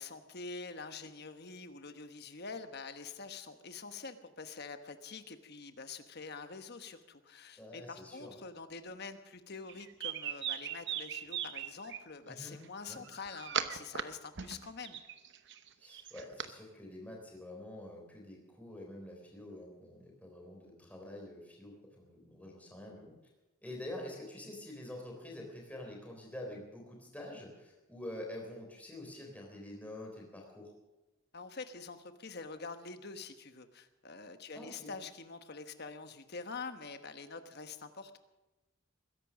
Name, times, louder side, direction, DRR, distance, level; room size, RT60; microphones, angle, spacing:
voice 1, 0.0-15.0 31.3-38.2, left 4 dB, 50° left, 9 dB, 1.2 m, -46 dB
voice 2, 7.6-8.4 12.3-12.5 12.9-13.0 15.8-23.1 23.6-30.7 34.6-34.9, left 1 dB, 5° left, 0 dB, 3.7 m, -47 dB
sound 1, 9.7-12.0 12.9-14.0 14.4-16.5, right 9 dB, 55° right, 0.9 m, -39 dB
21.0 x 10.5 x 6.4 m, 1.0 s
head